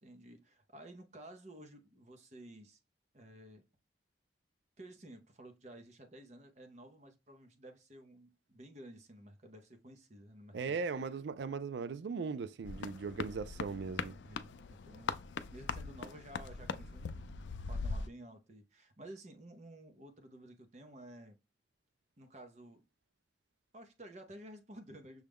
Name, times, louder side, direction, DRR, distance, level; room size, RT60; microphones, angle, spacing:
voice 1, 0.0-2.8 3.1-3.6 4.8-11.1 14.2-15.2 15.5-17.4 17.7-21.4 22.2-22.8 23.7-25.2, right 1 dB, 40° right, 0.7 m, -53 dB
voice 2, 10.5-14.1, right 5 dB, 75° right, 0.4 m, -38 dB
sound 1, 12.6-18.1, left 4 dB, 85° left, 0.4 m, -41 dB
6.3 x 2.2 x 3.4 m
head